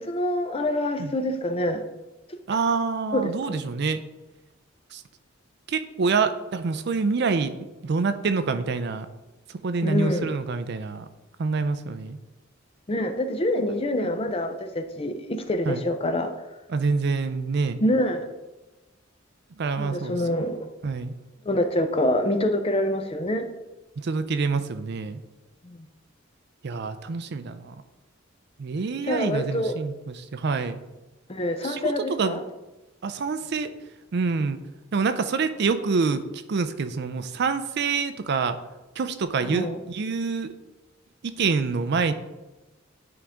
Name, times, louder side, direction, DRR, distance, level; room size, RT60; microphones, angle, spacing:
voice 1, 0.0-1.8 2.3-2.4 3.1-3.6 9.8-10.3 12.9-16.3 17.8-18.3 19.8-20.6 21.4-23.5 25.6-25.8 29.0-29.7 31.3-32.4 39.4-39.8, left 1 dB, 30° left, 7 dB, 0.5 m, -26 dB
voice 2, 2.5-4.0 4.9-5.0 5.7-7.5 7.8-9.1 9.6-11.1 11.4-12.2 15.6-15.8 16.7-17.8 19.6-20.2 20.8-21.1 24.0-25.2 26.6-27.7 28.6-30.8 31.6-32.4 33.0-33.7 34.1-34.6 34.9-38.6 39.0-40.5 41.2-42.1, right 4 dB, 55° right, 11 dB, 0.4 m, -26 dB
9.9 x 3.7 x 3.5 m, 1.1 s
head